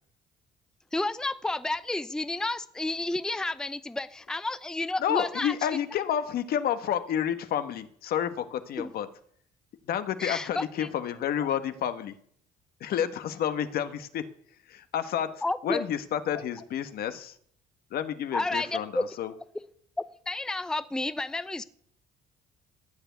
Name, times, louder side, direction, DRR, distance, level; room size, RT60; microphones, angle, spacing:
voice 1, 0.9-5.8 8.8-8.9 10.2-10.9 15.4-15.8 18.3-19.0 20.3-21.6, left 2 dB, 5° left, 13 dB, 0.6 m, -31 dB
voice 2, 5.0-9.1 9.9-12.2 12.8-14.3 14.7-15.3 15.6-17.4 17.9-19.3, left 9 dB, 65° left, 10 dB, 1.3 m, -30 dB
14.5 x 7.0 x 9.5 m, 0.63 s
cardioid pair, 110°, 17 cm